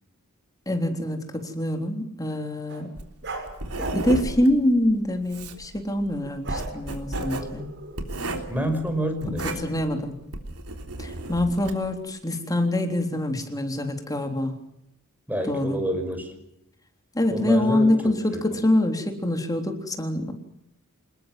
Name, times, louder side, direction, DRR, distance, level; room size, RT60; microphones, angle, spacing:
voice 1, 0.7-2.9 3.8-7.7 9.6-10.2 11.0-14.5 15.4-15.8 17.1-20.3, left 1 dB, 15° left, 4 dB, 3.6 m, -25 dB
sound 1, 2.7-2.8 3.2-4.2 5.3-5.6 6.4-6.8 7.1-8.3, right 3 dB, 55° right, 5.9 m, -36 dB
Writing, 3.0-11.9, right 2 dB, 90° right, 3.4 m, -34 dB
voice 2, 8.5-9.8 15.3-16.3 17.3-18.4, equal, 10° right, 6 dB, 5.8 m, -28 dB
26.5 x 20.5 x 7.7 m, 0.80 s
head